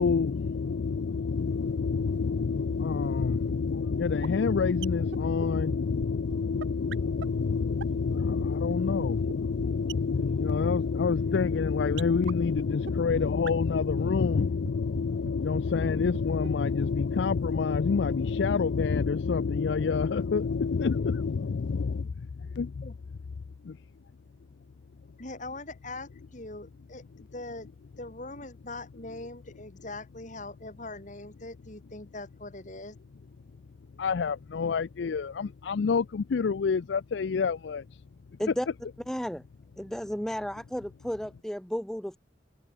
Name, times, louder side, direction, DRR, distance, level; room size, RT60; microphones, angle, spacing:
voice 1, 0.0-22.0 22.6-22.7 23.6-23.8 34.0-38.0, left 5 dB, 70° left, 0.4 m, -27 dB
sound 1, 3.0-3.1 3.3-3.4 3.6-3.7 3.9-4.0 4.2-4.3 4.5-4.6 4.8-4.9 5.1-5.2 5.4-5.5 5.7-5.8 6.0-6.1 6.3-6.4 6.6-6.7 6.9-7.0 7.2-7.3 7.5-7.6 7.8-8.1 8.4-8.5 8.7-8.8 9.0-9.1 9.3-9.4 9.6-9.7 9.9-10.0 10.2-10.3 10.5-10.6 12.0-12.1 12.3-12.4 12.6-12.7 12.9-13.0 13.2-13.3 13.5-13.6 13.7-13.8 14.0-14.4 14.6-14.7 15.0-15.1 15.2-15.3 15.5-15.6 15.8-16.2 16.4-16.5, right 6 dB, 75° right, 0.5 m, -38 dB
voice 2, 25.2-27.7 28.0-33.0, left 2 dB, 40° left, 4.3 m, -42 dB
voice 3, 39.1-39.4 39.8-42.2, equal, 5° left, 0.5 m, -33 dB
head